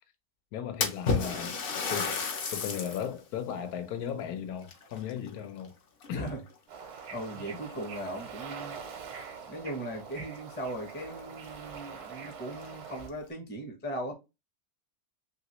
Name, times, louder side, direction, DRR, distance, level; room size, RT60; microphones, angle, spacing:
voice 1, 0.5-1.6 1.9-2.2 2.5-5.7 6.1-6.3, left 9 dB, 80° left, 1.1 m, -36 dB
Splash splatter, 0.8-3.1 3.6-3.7 4.6-5.7 6.0-6.5 7.3-7.4 7.8-7.9 10.1-10.2 10.5-10.6 11.2-11.3 11.7-11.8 12.5-13.1, left 4 dB, 60° left, 0.5 m, -32 dB
voice 2, 6.1-6.4 7.1-8.8 9.5-14.1, right 1 dB, 15° left, 0.4 m, -38 dB
Bird / Ocean, 6.7-13.1, right 6 dB, 80° right, 1.2 m, -44 dB
3.0 x 2.9 x 2.9 m
omnidirectional pair, 1.6 m